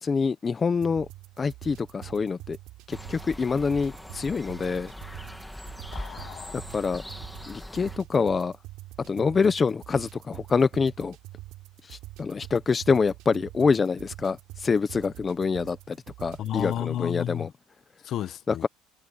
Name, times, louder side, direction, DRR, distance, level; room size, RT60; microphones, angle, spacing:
voice 1, 0.0-1.1 1.4-2.6 2.9-4.9 6.5-7.0 7.5-8.5 9.0-11.2 11.9-17.5 18.5-18.7, left 5 dB, 20° left, 0.8 m, -26 dB
sound 1, 0.7-16.8, right 17 dB, 70° right, 4.4 m, -45 dB
sound 2, 2.9-8.0, left 1 dB, 5° left, 1.6 m, -41 dB
voice 2, 5.9-6.6 16.4-17.5 18.0-18.6, left 11 dB, 50° left, 0.9 m, -32 dB
cardioid pair, 145°, 0 cm